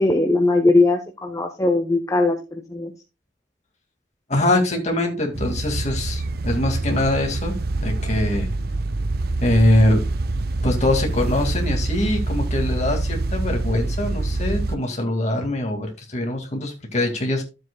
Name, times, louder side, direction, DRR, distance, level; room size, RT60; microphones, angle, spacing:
voice 1, 0.0-2.9, left 2 dB, 15° left, 5 dB, 0.7 m, -19 dB
voice 2, 4.3-8.5 9.4-10.0 10.6-17.4, left 1 dB, 35° left, 3 dB, 2.2 m, -23 dB
sound 1, 5.3-14.8, right 2 dB, 50° right, 0.5 m, -25 dB
13.0 x 7.7 x 2.3 m, 0.29 s
head